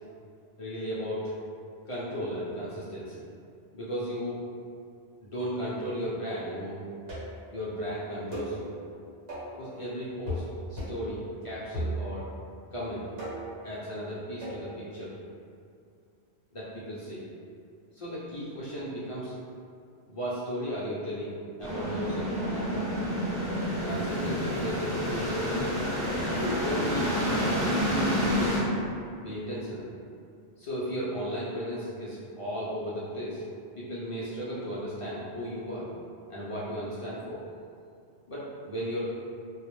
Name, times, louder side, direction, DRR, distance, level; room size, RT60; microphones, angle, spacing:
voice 1, 0.6-1.3 1.9-3.3 3.7-4.4 5.2-6.8 7.5-8.7 9.6-10.4 10.7-12.3 12.7-13.0 13.6-15.1 16.5-17.2 17.9-19.3 20.1-22.7 23.8-25.8 26.3-27.6 28.0-28.8 29.2-29.9 30.6-33.4 33.8-35.9 36.3-37.4 38.3-39.1, equal, 55° left, -8 dB, 0.3 m, -35 dB
sound 1, 7.1-7.5 8.3-8.6 9.3-9.6 10.3-10.5 10.8-11.1 11.7-12.3 13.2-13.6 14.4-14.6, equal, 70° right, 1.2 m, -35 dB
sound 2, 21.6-28.6, equal, 45° right, 0.8 m, -29 dB
2.2 x 2.0 x 2.9 m, 2.3 s
omnidirectional pair, 1.1 m